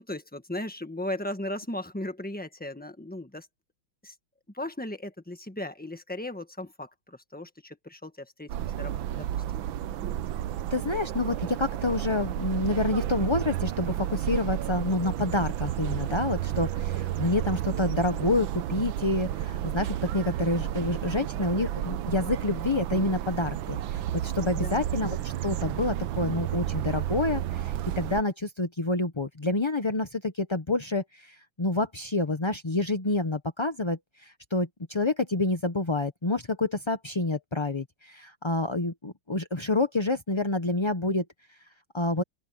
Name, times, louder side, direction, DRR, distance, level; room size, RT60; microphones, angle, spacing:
voice 1, 0.0-3.5 4.0-4.1 4.5-9.4 24.6-24.8, left 1 dB, 5° left, 1.2 m, -37 dB
sound 1, 8.5-28.2, right 12 dB, 75° right, 1.5 m, -31 dB
voice 2, 10.7-41.2 41.9-42.2, left 2 dB, 25° left, 0.5 m, -28 dB
open air
omnidirectional pair, 2.2 m